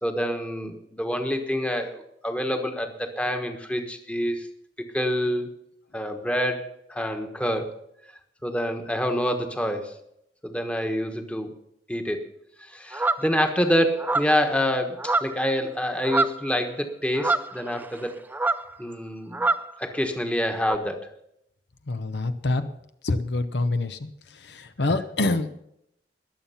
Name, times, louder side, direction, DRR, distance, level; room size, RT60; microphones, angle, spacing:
voice 1, 0.0-4.5 4.9-5.5 5.9-7.7 8.4-9.9 10.4-11.5 11.9-12.2 12.6-18.2 18.8-19.5 19.8-21.1, equal, 5° left, 5 dB, 1.3 m, -27 dB
sound 1, 12.9-13.3 14.0-14.5 15.0-15.5 15.8-16.5 17.2-18.0 18.3-18.7 19.3-19.7 20.6-20.8, right 3 dB, 10° right, 0.4 m, -26 dB
voice 2, 21.9-22.6 23.0-24.1 24.4-25.5, left 2 dB, 70° left, 9 dB, 0.8 m, -26 dB
20.5 x 7.3 x 5.7 m, 0.77 s
head